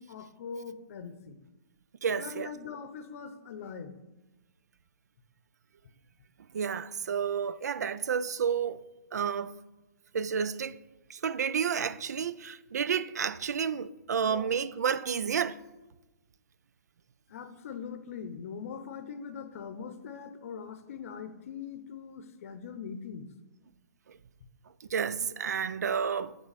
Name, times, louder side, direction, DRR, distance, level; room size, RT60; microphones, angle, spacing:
voice 1, 0.0-1.4 2.2-3.9 14.3-14.5 17.3-23.3, left 6 dB, 60° left, 0.7 m, -42 dB
voice 2, 2.0-2.5 6.5-8.8 9.1-9.6 10.1-10.8 11.1-15.6 24.9-26.4, right 7 dB, 90° right, 0.4 m, -30 dB
9.4 x 3.5 x 4.1 m
hypercardioid pair, 150°, 9 cm